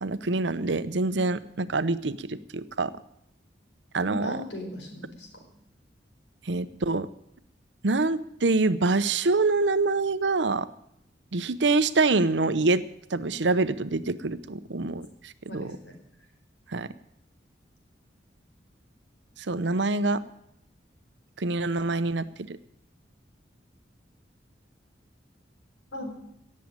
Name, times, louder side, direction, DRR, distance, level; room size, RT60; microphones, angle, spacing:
voice 1, 0.0-2.9 3.9-4.4 6.5-7.1 7.8-10.7 11.3-12.8 13.1-15.7 16.7-16.9 19.5-20.2 21.4-22.6, right 3 dB, 85° right, 14 dB, 0.8 m, -25 dB
voice 2, 4.1-5.3 15.5-16.0 25.9-26.2, left 1 dB, 85° left, 3 dB, 4.9 m, -37 dB
18.0 x 7.6 x 8.9 m, 0.78 s
head